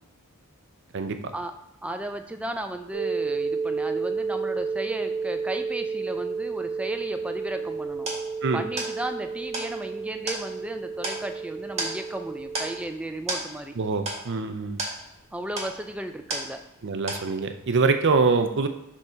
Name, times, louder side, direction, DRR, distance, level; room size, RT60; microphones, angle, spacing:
voice 1, 1.8-8.1 8.5-13.8 15.3-16.6, right 1 dB, 5° right, 6 dB, 0.4 m, -34 dB
sound 1, 2.9-12.8, right 5 dB, 25° left, 2.2 m, -31 dB
sound 2, 7.4-16.8 17.1-17.7, right 2 dB, 30° right, 1.8 m, -35 dB
voice 2, 13.8-14.8 16.8-18.7, right 4 dB, 55° right, 8 dB, 0.6 m, -24 dB
6.6 x 3.7 x 4.4 m, 0.87 s
head